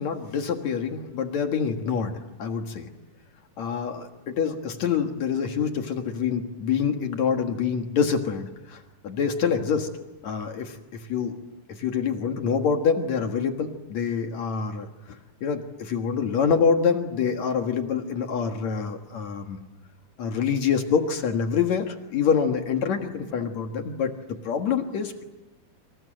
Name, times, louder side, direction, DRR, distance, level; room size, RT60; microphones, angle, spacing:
voice 1, 0.0-2.9 3.6-9.9 10.2-11.4 11.7-14.9 15.4-19.6 20.2-25.2, left 6 dB, 65° left, 5 dB, 2.9 m, -26 dB
29.0 x 25.5 x 7.8 m, 1.0 s
omnidirectional pair, 3.5 m